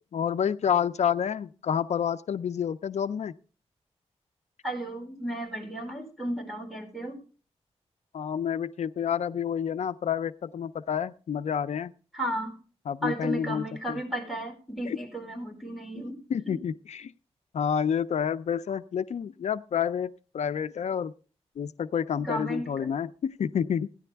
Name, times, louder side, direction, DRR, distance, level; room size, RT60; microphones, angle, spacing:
voice 1, 0.1-3.3 8.1-11.9 12.9-14.0 14.8-15.0 16.3-17.1 17.5-21.1 21.6-23.9, left 8 dB, 80° left, 13 dB, 0.5 m, -29 dB
voice 2, 4.6-7.2 12.1-12.6 13.0-16.2 16.5-16.6 22.2-22.9, right 1 dB, ahead, 1 dB, 4.2 m, -34 dB
16.5 x 11.0 x 3.4 m, 0.37 s
wide cardioid pair, 150°, 11 cm